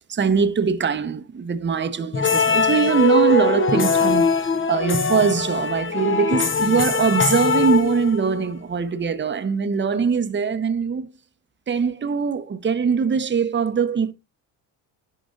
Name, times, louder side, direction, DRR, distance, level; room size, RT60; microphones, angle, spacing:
voice 1, 0.1-11.1 11.7-14.1, right 6 dB, 25° right, 0.8 m, -22 dB
sound 1, 2.1-8.4, left 4 dB, 25° left, 0.8 m, -21 dB
10.5 x 5.0 x 2.5 m
supercardioid pair, 70°, 48 cm